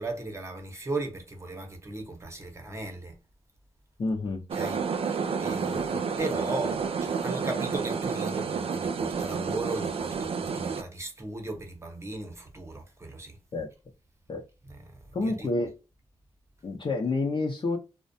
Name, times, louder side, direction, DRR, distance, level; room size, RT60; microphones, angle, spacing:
voice 1, 0.0-3.2 4.5-13.4 14.7-15.5, right 2 dB, 25° right, 0.8 m, -37 dB
voice 2, 4.0-4.4 5.6-5.8 13.5-13.7 14.3-14.4 15.1-15.7 16.6-17.8, left 3 dB, 50° left, 0.6 m, -29 dB
sound 1, 4.5-10.8, right 5 dB, 60° right, 0.4 m, -30 dB
2.4 x 2.1 x 2.6 m
cardioid pair, 80°, 11 cm